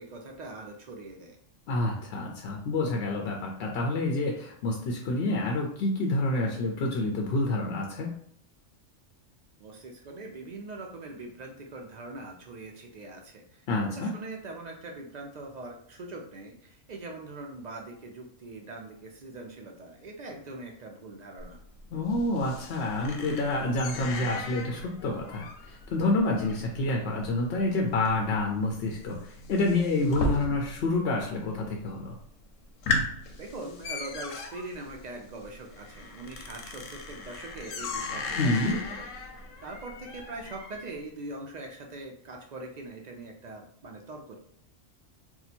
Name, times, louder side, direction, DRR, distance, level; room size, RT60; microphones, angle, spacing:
voice 1, 0.0-1.4 9.6-21.6 33.3-44.4, right 2 dB, 65° right, 1 dB, 0.4 m, -42 dB
voice 2, 1.7-8.1 13.7-14.1 21.9-32.1 38.4-38.8, left 2 dB, 65° left, 1 dB, 0.7 m, -28 dB
sound 1, 21.4-31.0 31.2-31.8 32.2-32.3 32.6-41.0, left 3 dB, 90° left, 1.0 m, -37 dB
2.8 x 2.2 x 4.1 m, 0.64 s
omnidirectional pair, 1.3 m